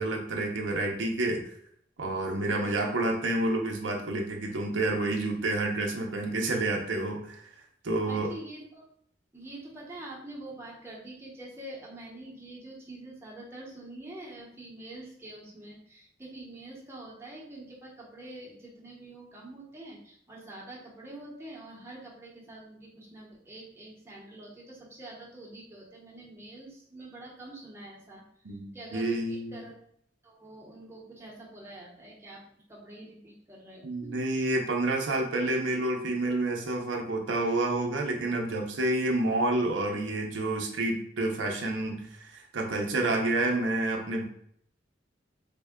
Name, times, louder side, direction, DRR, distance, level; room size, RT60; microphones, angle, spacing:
voice 1, 0.0-1.4 2.0-7.5 7.8-8.3 28.4-29.6 33.8-44.2, right 2 dB, 85° right, 1 dB, 0.6 m, -29 dB
voice 2, 2.5-3.0 8.1-8.9 9.3-28.2 28.5-29.9 30.2-34.2, right 1 dB, 15° right, -4 dB, 0.8 m, -46 dB
3.5 x 2.2 x 3.5 m, 0.67 s
head